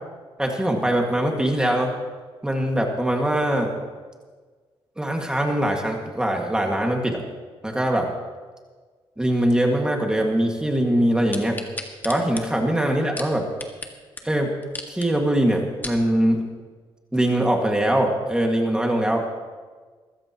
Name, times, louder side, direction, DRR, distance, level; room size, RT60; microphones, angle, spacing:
voice 1, 0.4-1.9 2.4-3.7 5.0-7.2 7.6-8.1 9.2-11.6 12.0-13.5 14.2-14.6 14.9-16.4 17.1-19.3, right 1 dB, 10° right, 1 dB, 1.9 m, -22 dB
sound 1, 11.3-13.9 14.2-14.3 14.6-15.1 15.6-16.0 16.6-16.7, left 2 dB, 20° left, 1.7 m, -35 dB
21.5 x 14.5 x 3.0 m, 1.4 s
cardioid pair, 100°, 10 cm